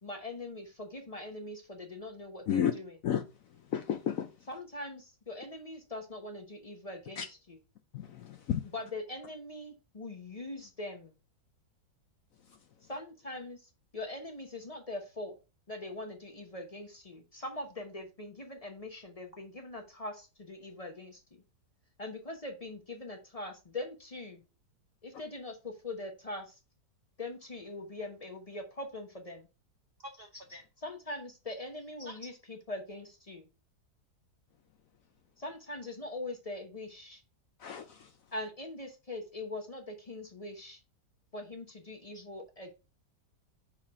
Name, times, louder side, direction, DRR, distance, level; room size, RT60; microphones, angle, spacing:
voice 1, 0.0-3.0 4.5-7.6 8.7-11.1 12.9-13.7 13.9-15.3 15.7-21.2 22.0-24.4 25.0-26.5 27.2-29.5 30.8-33.5 35.4-37.2 38.3-40.8 41.3-42.7, left 2 dB, 30° left, 0.7 m, -42 dB
voice 2, 3.7-4.3 7.2-7.3 7.9-8.6 37.6-38.1, left 9 dB, 65° left, 0.8 m, -31 dB
voice 3, 30.0-30.7 32.0-32.3 42.1-42.2, equal, 55° right, 0.6 m, -47 dB
5.7 x 4.8 x 3.5 m
omnidirectional pair, 1.8 m